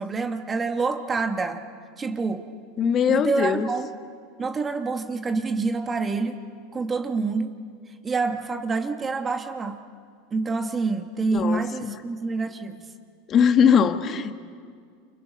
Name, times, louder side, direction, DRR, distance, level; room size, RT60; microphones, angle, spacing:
voice 1, 0.0-1.6 2.0-2.5 3.1-3.9 4.4-6.4 6.7-7.6 8.0-9.8 10.3-12.8, right 4 dB, 20° right, 6 dB, 1.5 m, -27 dB
voice 2, 2.8-3.7 11.3-11.9 13.3-14.3, left 7 dB, 40° left, 8 dB, 1.4 m, -21 dB
29.0 x 28.0 x 5.4 m, 2.1 s
supercardioid pair, 110°, 0 cm